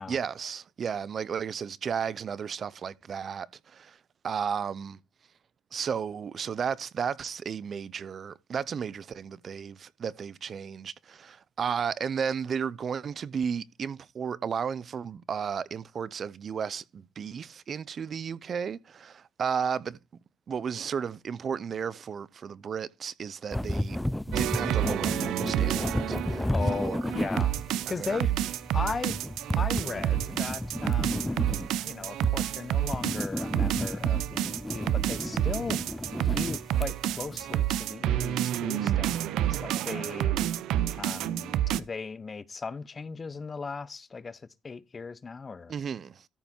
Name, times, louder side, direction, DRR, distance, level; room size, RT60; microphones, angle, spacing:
voice 1, 0.1-4.0 4.2-5.0 5.7-20.0 20.5-24.0 24.3-26.4 26.7-27.0 27.9-28.2 45.7-46.3, right 7 dB, 50° right, 0.7 m, -33 dB
sound 1, 23.5-37.8, left 1 dB, 5° left, 0.4 m, -33 dB
sound 2, 24.3-41.8, right 12 dB, 85° right, 0.6 m, -29 dB
voice 2, 26.5-27.5 27.9-28.4 28.7-29.2 29.5-31.5 31.8-35.8 36.2-40.3 40.9-45.7, left 4 dB, 35° left, 0.9 m, -37 dB
13.5 x 5.5 x 4.4 m
cardioid pair, 90°, 0 cm